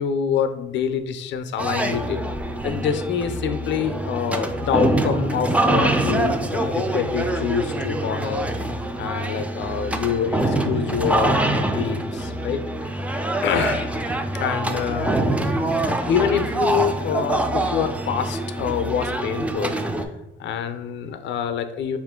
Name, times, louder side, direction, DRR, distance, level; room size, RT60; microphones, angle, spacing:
voice 1, 0.0-2.2 2.6-8.5 8.8-12.6 13.4-13.9 14.3-15.1 16.0-20.1 20.4-22.0, left 7 dB, 65° left, 10 dB, 0.4 m, -26 dB
sound 1, 1.6-20.1, right 1 dB, 5° right, 0.3 m, -24 dB
4.2 x 2.4 x 3.6 m, 0.94 s
cardioid pair, 90°, 20 cm